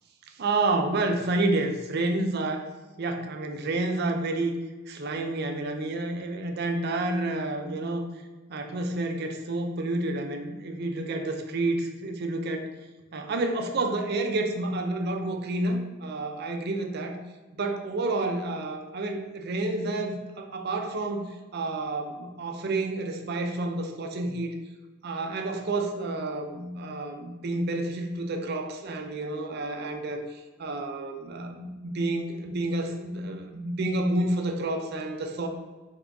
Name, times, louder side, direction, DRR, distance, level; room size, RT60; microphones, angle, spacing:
voice 1, 0.4-2.7 3.0-4.5 4.9-8.0 8.5-12.7 13.1-17.2 17.5-24.5 25.0-35.5, right 2 dB, 55° right, 4 dB, 0.5 m, -29 dB
3.9 x 3.6 x 3.4 m, 1.2 s
head